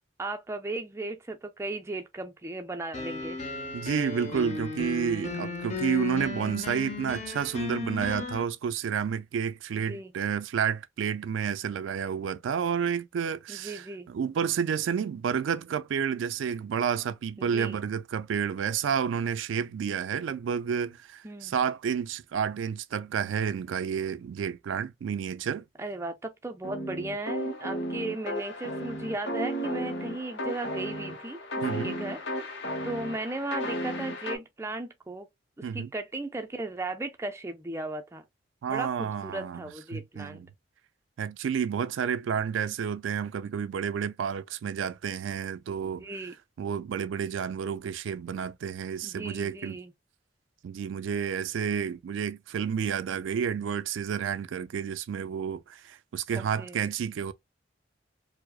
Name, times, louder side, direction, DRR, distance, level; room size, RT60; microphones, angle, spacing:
voice 1, 0.2-3.4 9.7-10.1 13.5-14.1 17.4-17.8 21.2-21.5 25.8-31.4 31.8-32.2 32.8-35.3 35.6-38.2 38.7-40.4 46.0-46.3 49.0-49.9 56.4-56.8, right 2 dB, 15° right, 0.4 m, -36 dB
sound 1, 2.9-8.4, left 3 dB, 35° left, 0.7 m, -35 dB
voice 2, 3.7-25.6 31.6-32.0 35.6-35.9 38.6-39.6 39.9-40.5 41.2-46.0 46.6-49.8 50.6-57.3, right 7 dB, 80° right, 0.3 m, -30 dB
sound 2, 26.6-34.4, equal, 65° left, 0.9 m, -34 dB
4.6 x 2.0 x 2.3 m
head